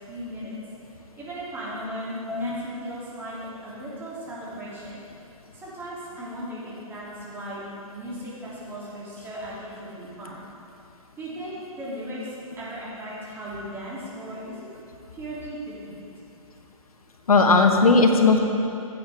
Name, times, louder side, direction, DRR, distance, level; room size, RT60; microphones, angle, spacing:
voice 1, 0.1-0.5 1.2-3.4 3.6-5.0 5.5-7.6 7.9-10.4 11.2-12.3 12.6-14.6 15.1-16.0, equal, 10° right, -8 dB, 2.8 m, -37 dB
voice 2, 17.3-18.4, left 3 dB, 80° left, 4 dB, 1.2 m, -17 dB
15.0 x 8.5 x 3.5 m, 2.7 s
figure-of-eight pair, 135°, 19 cm